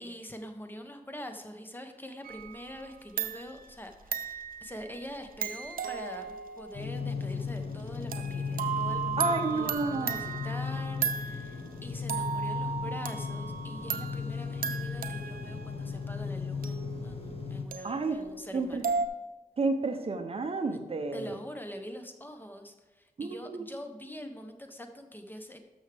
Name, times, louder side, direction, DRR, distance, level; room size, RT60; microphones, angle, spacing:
voice 1, 0.0-19.0 20.7-20.8 21.1-25.6, equal, 15° left, 5 dB, 0.9 m, -44 dB
sound 1, 2.2-2.9 3.2-11.7 12.1-19.1, right 7 dB, 75° right, 0.6 m, -36 dB
sound 2, 6.7-17.7, left 5 dB, 40° left, 1.0 m, -36 dB
voice 2, 9.2-10.2 17.8-18.2 18.5-18.8 19.6-21.3 23.2-23.7, right 3 dB, 40° right, 7 dB, 0.8 m, -31 dB
12.5 x 6.4 x 3.4 m, 1.2 s
wide cardioid pair, 90°, 15 cm